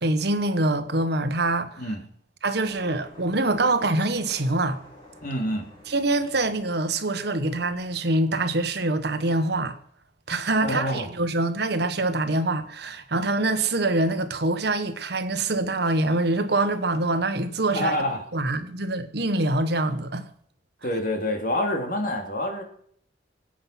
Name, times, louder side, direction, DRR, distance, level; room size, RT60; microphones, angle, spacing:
voice 1, 0.0-1.9 2.4-4.8 5.9-9.8 10.3-18.0 18.3-20.3, right 2 dB, 65° right, 1.3 m, -25 dB
sound 1, 2.6-7.8, left 1 dB, 25° left, 6.5 m, -50 dB
voice 2, 5.2-5.7 10.6-11.1 17.7-18.2 20.8-22.6, left 1 dB, 50° left, 3.1 m, -27 dB
23.5 x 8.7 x 6.0 m
head